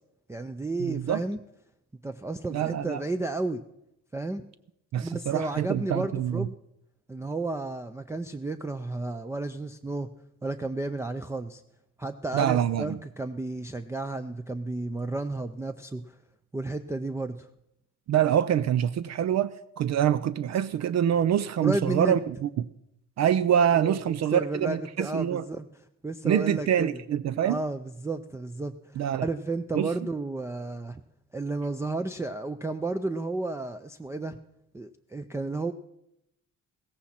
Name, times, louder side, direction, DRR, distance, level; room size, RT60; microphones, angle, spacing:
voice 1, 0.3-1.4 2.0-3.6 4.1-4.4 5.0-6.6 7.1-10.1 10.4-11.6 12.0-16.2 16.5-17.5 21.6-22.2 23.7-25.7 26.0-27.0 27.4-31.0 31.3-34.4 34.7-35.7, right 2 dB, 10° right, 0.5 m, -32 dB
voice 2, 0.8-1.2 2.5-3.0 4.9-6.5 12.3-13.0 18.1-19.5 19.8-22.7 23.2-25.4 26.2-27.6 29.0-29.3 29.7-29.9, right 9 dB, 60° right, 0.5 m, -25 dB
16.0 x 14.5 x 4.3 m
cardioid pair, 90°, 30 cm